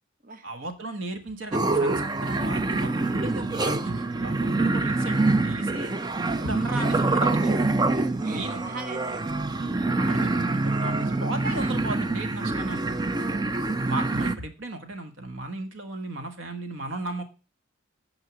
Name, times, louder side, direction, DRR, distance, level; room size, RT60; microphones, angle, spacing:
voice 1, 0.4-5.9 6.4-7.7 8.3-8.6 9.9-13.0 13.8-17.2, right 2 dB, 70° right, 7 dB, 1.6 m, -35 dB
sound 1, 1.5-14.4, right 2 dB, 20° right, 0.5 m, -25 dB
voice 2, 8.0-9.3 9.6-9.8 13.3-13.9, right 2 dB, 45° right, 7 dB, 1.0 m, -40 dB
9.3 x 5.1 x 6.1 m, 0.32 s
head